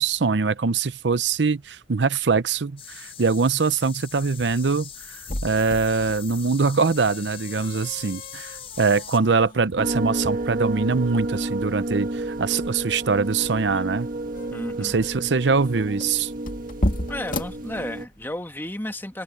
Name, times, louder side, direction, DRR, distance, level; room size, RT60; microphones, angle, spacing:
voice 1, 0.0-14.1 14.8-16.3, right 4 dB, 85° right, 0.7 m, -23 dB
sound 1, 2.8-9.2, left 8 dB, 35° left, 5.4 m, -41 dB
sound 2, 4.9-18.3, left 1 dB, 50° left, 2.3 m, -35 dB
sound 3, 9.8-18.1, right 2 dB, 50° right, 1.6 m, -30 dB
voice 2, 14.5-15.0 17.1-19.2, left 1 dB, 15° left, 1.6 m, -33 dB
open air
head